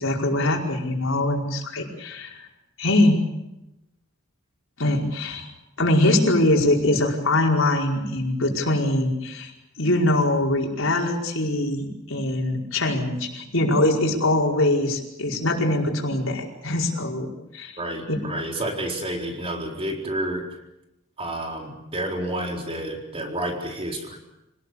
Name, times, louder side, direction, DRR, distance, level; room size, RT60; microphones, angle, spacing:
voice 1, 0.0-2.5 2.8-3.2 4.8-5.5 5.8-9.5 9.8-17.8 18.1-18.2, left 1 dB, 80° left, 0 dB, 5.0 m, -23 dB
voice 2, 17.8-20.4 21.2-24.2, right 1 dB, 30° right, 2 dB, 4.4 m, -30 dB
26.5 x 18.5 x 8.5 m, 0.92 s
head